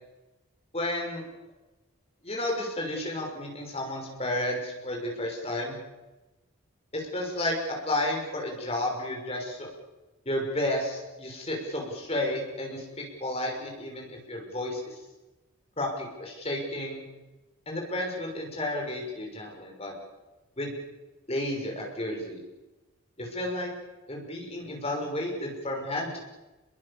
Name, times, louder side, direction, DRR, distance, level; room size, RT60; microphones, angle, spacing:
voice 1, 0.7-1.2 2.2-5.8 6.9-7.6 7.8-9.7 10.3-14.9 15.8-17.0 17.7-19.9 20.6-20.8 21.3-22.4 23.2-23.7 24.1-26.2, left 1 dB, 25° left, 0 dB, 5.9 m, -32 dB
28.5 x 22.5 x 7.2 m, 1.1 s
head